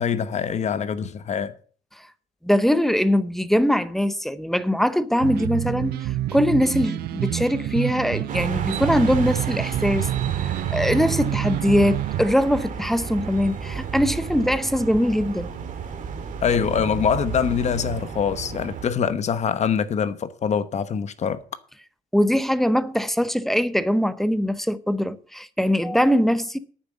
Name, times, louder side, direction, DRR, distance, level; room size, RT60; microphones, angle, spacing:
voice 1, 0.0-1.6 16.4-21.4, left 7 dB, 40° left, 1.1 m, -24 dB
voice 2, 2.4-10.1 10.4-15.5 22.1-26.6, equal, ahead, 0.8 m, -22 dB
sound 1, 5.2-12.3, right 14 dB, 70° right, 0.5 m, -27 dB
sound 2, 8.3-18.8, right 6 dB, 50° right, 2.3 m, -32 dB
9.5 x 7.3 x 7.3 m
cardioid pair, 110°, 17 cm